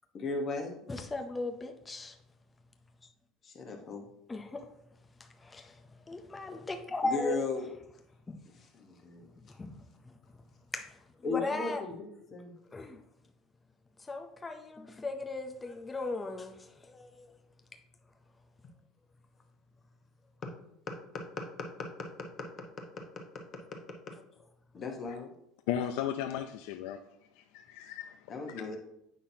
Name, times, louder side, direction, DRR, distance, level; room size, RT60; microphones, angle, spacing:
voice 1, 0.1-0.8 3.4-4.1 7.0-7.7 8.7-9.3 11.2-12.5 24.7-25.3 28.3-28.8, left 3 dB, 25° left, 1.0 m, -36 dB
voice 2, 0.9-2.2 4.3-4.7 5.4-5.8 6.1-7.4 8.3-8.4 9.6-10.1 10.7-11.0 11.3-11.8 12.7-13.0 14.1-17.3, left 3 dB, 10° left, 0.5 m, -37 dB
voice 3, 25.7-27.0 27.4-28.6, left 10 dB, 80° left, 0.4 m, -36 dB
8.5 x 5.8 x 2.8 m
cardioid pair, 170°, 0 cm